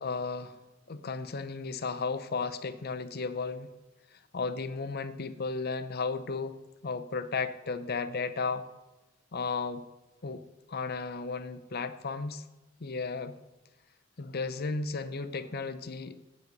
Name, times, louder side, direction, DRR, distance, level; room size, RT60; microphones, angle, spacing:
voice 1, 0.0-0.6 0.9-3.7 4.1-6.6 6.8-8.7 9.3-9.8 10.2-10.4 10.7-12.4 12.8-13.4 14.2-16.2, left 4 dB, 50° left, 11 dB, 0.7 m, -34 dB
17.0 x 5.9 x 5.4 m, 1.0 s
head